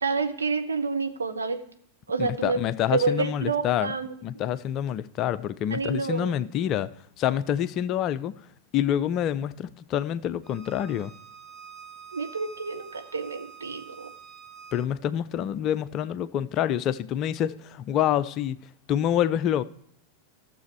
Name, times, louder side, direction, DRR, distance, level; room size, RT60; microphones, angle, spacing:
voice 1, 0.0-1.6 2.1-2.6 2.9-4.1 5.7-6.4 12.1-14.1, right 4 dB, 75° right, 1.0 m, -28 dB
voice 2, 2.2-3.9 4.2-6.9 7.2-8.4 8.7-11.1 14.7-18.6 18.9-19.6, left 10 dB, 35° left, 0.4 m, -27 dB
Bowed string instrument, 10.4-14.9, right 6 dB, 10° right, 1.0 m, -46 dB
15.0 x 6.9 x 4.6 m
figure-of-eight pair, 90°, 0 cm